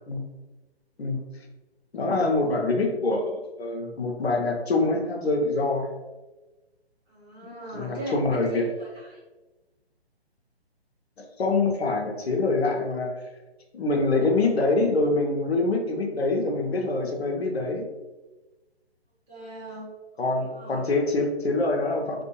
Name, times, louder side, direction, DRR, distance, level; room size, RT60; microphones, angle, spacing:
voice 1, 1.9-5.9 7.4-8.7 11.2-13.1 13.7-17.9 20.2-22.2, left 3 dB, 75° left, 2 dB, 0.8 m, -25 dB
voice 2, 7.1-9.2 19.3-19.9 20.4-20.9, right 1 dB, 15° right, -10 dB, 1.4 m, -38 dB
3.7 x 2.5 x 2.8 m, 1.1 s
figure-of-eight pair, 145°, 32 cm